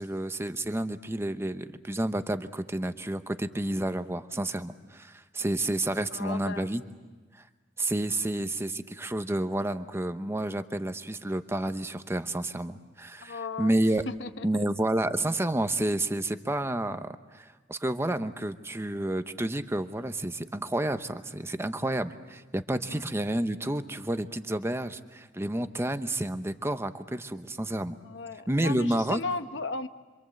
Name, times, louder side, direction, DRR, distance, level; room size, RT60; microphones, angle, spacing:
voice 1, 0.0-6.8 7.8-14.0 14.4-28.0 28.5-29.2, right 1 dB, 15° right, 10 dB, 0.9 m, -30 dB
voice 2, 6.1-6.7 13.2-13.7 14.1-14.6 22.9-23.1 28.0-29.9, left 3 dB, 70° left, 10 dB, 1.1 m, -36 dB
26.5 x 26.0 x 7.8 m, 1.3 s
head